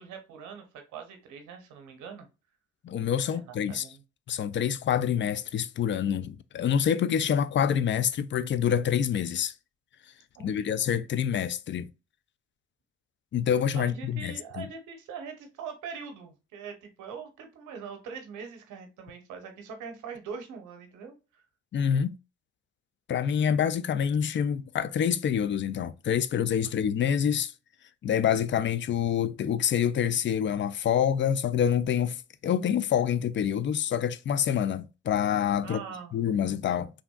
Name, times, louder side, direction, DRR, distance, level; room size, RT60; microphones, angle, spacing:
voice 1, 0.0-2.3 3.2-4.0 10.4-10.6 13.7-21.4 35.6-36.2, right 6 dB, 80° right, 0.9 m, -42 dB
voice 2, 2.8-3.9 4.3-9.5 10.4-11.9 13.3-14.7 21.7-22.2 23.1-27.5 28.0-32.2 32.4-35.8 36.1-36.9, left 8 dB, 40° left, 0.4 m, -26 dB
3.4 x 2.5 x 2.2 m
hypercardioid pair, 45°, 30 cm